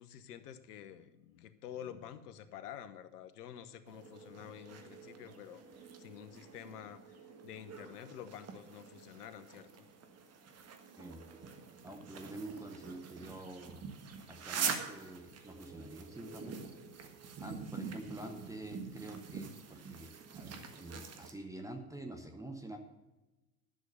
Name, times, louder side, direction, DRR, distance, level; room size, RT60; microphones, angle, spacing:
voice 1, 0.0-5.6 6.0-7.2 7.4-9.9, left 10 dB, 75° left, 12 dB, 1.1 m, -49 dB
sound 1, 3.9-21.3, right 6 dB, 30° right, 1.6 m, -45 dB
voice 2, 11.8-13.8 14.3-16.5 17.4-22.8, right 1 dB, 5° right, 4 dB, 1.2 m, -47 dB
11.5 x 6.3 x 6.8 m, 1.1 s
hypercardioid pair, 90°, 47 cm